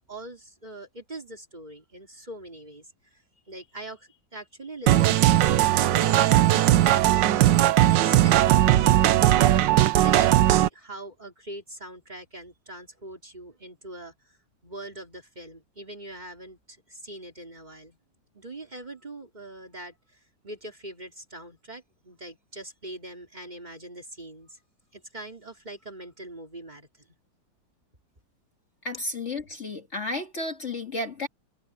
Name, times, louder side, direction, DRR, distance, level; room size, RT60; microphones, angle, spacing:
voice 1, 0.1-2.9 3.1-3.2 3.5-9.2 10.0-14.1 14.6-18.0 18.3-20.2 20.4-24.6 24.9-26.9, right 1 dB, 25° right, 2.9 m, -42 dB
sound 1, 4.9-10.7, right 13 dB, 90° right, 1.5 m, -19 dB
voice 2, 28.8-31.3, left 2 dB, 40° left, 2.0 m, -32 dB
omnidirectional pair, 1.9 m